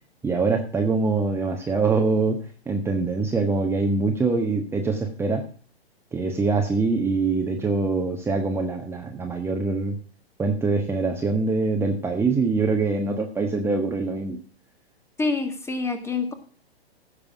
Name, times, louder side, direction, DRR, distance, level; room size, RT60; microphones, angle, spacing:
voice 1, 0.2-2.4 2.7-5.4 6.1-10.0 10.4-14.4, right 3 dB, 10° right, 2 dB, 1.3 m, -24 dB
voice 2, 15.2-16.3, left 4 dB, 10° left, 8 dB, 1.7 m, -26 dB
16.0 x 6.8 x 5.1 m, 0.39 s
figure-of-eight pair, 115°, 31 cm